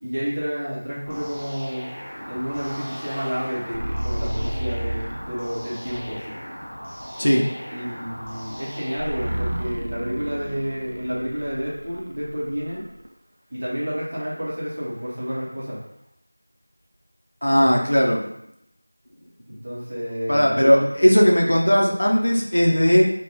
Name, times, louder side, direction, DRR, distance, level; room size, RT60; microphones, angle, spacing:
voice 1, 0.0-2.0 2.3-6.4 7.7-12.8 13.5-15.8 19.5-20.9, equal, 30° right, -8 dB, 0.8 m, -30 dB
sound 1, 1.1-9.6, equal, 35° left, 1.1 m, -38 dB
sound 2, 2.1-5.4 5.9-6.4 9.0-13.1, right 1 dB, 55° right, 0.4 m, -32 dB
voice 2, 17.4-18.2 20.3-23.1, equal, 65° left, 0 dB, 0.6 m, -17 dB
3.4 x 2.2 x 2.6 m, 0.75 s
figure-of-eight pair, 175°, 0 cm